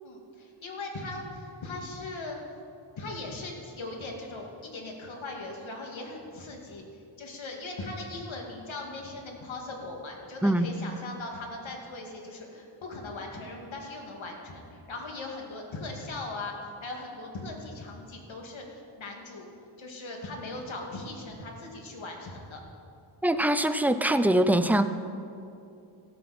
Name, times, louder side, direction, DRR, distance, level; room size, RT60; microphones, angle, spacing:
voice 1, 0.0-2.4 3.0-6.8 7.2-16.6 16.8-19.5 19.8-22.6, left 2 dB, 65° left, 0 dB, 2.7 m, -39 dB
voice 2, 23.2-24.8, right 1 dB, 5° right, 10 dB, 0.6 m, -23 dB
17.5 x 14.5 x 4.4 m, 2.7 s
wide cardioid pair, 95°, 49 cm